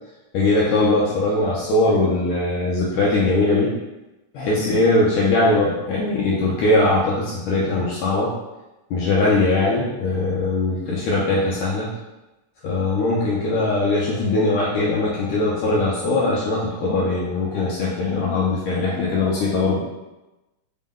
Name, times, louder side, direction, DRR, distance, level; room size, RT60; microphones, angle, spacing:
voice 1, 0.3-3.7 4.3-8.4 8.9-11.9 12.6-19.8, left 2 dB, 75° left, -6 dB, 1.7 m, -20 dB
5.2 x 2.1 x 3.6 m, 1.0 s
omnidirectional pair, 3.6 m